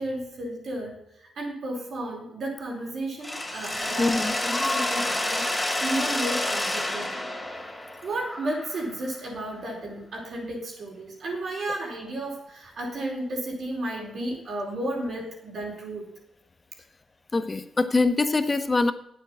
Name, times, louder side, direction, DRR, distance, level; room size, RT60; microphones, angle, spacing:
voice 1, 0.0-5.5 5.8-7.3 8.0-16.1, right 1 dB, 60° right, 0 dB, 4.6 m, -33 dB
Mechanisms, 3.2-9.1, left 1 dB, 15° left, 2.9 m, -29 dB
voice 2, 4.0-4.3 17.3-18.9, left 3 dB, 30° left, 10 dB, 1.3 m, -23 dB
9.0 x 8.0 x 7.7 m, 0.79 s
supercardioid pair, 50°, 0 cm